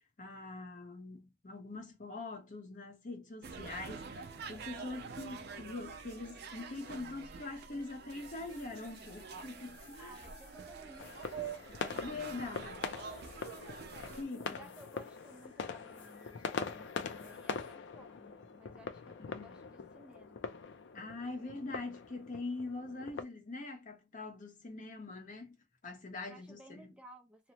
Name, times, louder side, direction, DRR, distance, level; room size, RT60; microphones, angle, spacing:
voice 1, 0.2-10.2 12.0-12.8 14.2-14.7 19.2-19.5 20.9-25.6 25.8-26.9, left 3 dB, 45° left, 0.8 m, -43 dB
sound 1, 3.4-14.2, right 5 dB, 60° right, 0.5 m, -47 dB
sound 2, 7.9-17.7, left 5 dB, 85° left, 0.9 m, -62 dB
voice 2, 10.0-11.4 11.7-13.4 14.3-20.5 26.2-27.5, equal, 5° right, 0.5 m, -57 dB
sound 3, 11.0-23.2, left 5 dB, 70° left, 0.4 m, -43 dB
2.9 x 2.0 x 2.8 m
head